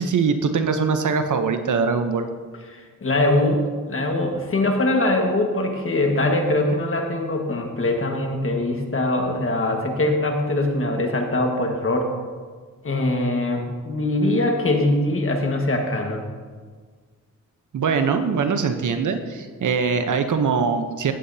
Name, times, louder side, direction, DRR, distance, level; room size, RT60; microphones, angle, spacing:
voice 1, 0.0-2.3 17.7-21.1, right 5 dB, 65° right, 8 dB, 0.8 m, -22 dB
voice 2, 2.7-12.1 12.8-16.2, left 1 dB, 40° left, 2 dB, 1.5 m, -22 dB
15.0 x 8.6 x 2.8 m, 1.5 s
cardioid pair, 90°, 32 cm